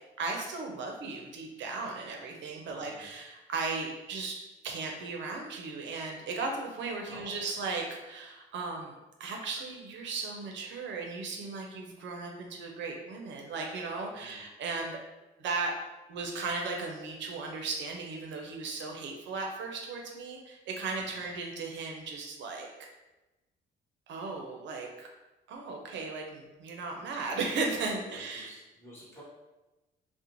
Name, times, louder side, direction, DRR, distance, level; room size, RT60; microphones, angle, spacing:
voice 1, 0.2-4.4 4.6-8.9 9.2-15.0 15.4-15.7 16.1-22.9 24.1-25.1 25.5-28.5, right 3 dB, 70° right, 1 dB, 0.5 m, -36 dB
voice 2, 2.6-3.1 7.1-7.5 14.1-14.5 21.0-21.3 28.1-29.2, equal, 10° left, -7 dB, 1.0 m, -52 dB
2.4 x 2.1 x 2.9 m, 1.0 s
cardioid pair, 90°, 20 cm